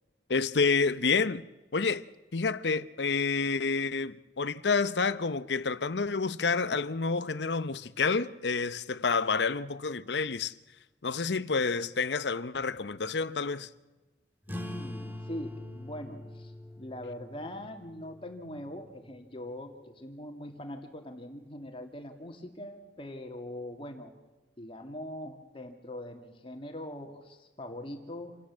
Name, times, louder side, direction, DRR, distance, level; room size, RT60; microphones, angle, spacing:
voice 1, 0.3-1.4 1.7-2.0 2.3-10.5 11.0-13.7, left 4 dB, 70° left, 0.8 m, -29 dB
sound 1, 14.4-19.5, left 1 dB, 10° right, 1.7 m, -44 dB
voice 2, 14.5-24.1 24.6-28.4, left 1 dB, 30° left, 2.2 m, -42 dB
27.5 x 18.0 x 7.5 m
head